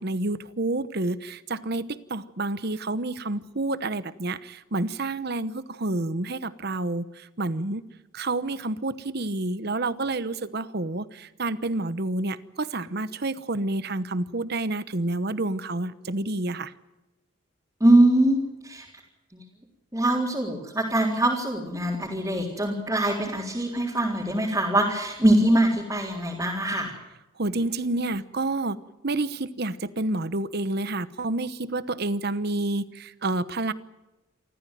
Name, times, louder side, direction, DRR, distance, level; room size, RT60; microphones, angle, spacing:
voice 1, 0.0-7.8 8.1-16.7 27.4-28.8 29.0-33.7, right 2 dB, 50° right, 15 dB, 1.0 m, -29 dB
voice 2, 17.8-18.9 19.3-19.4 19.9-26.9, right 1 dB, 15° right, -5 dB, 3.8 m, -23 dB
27.5 x 14.5 x 9.2 m, 1.0 s
head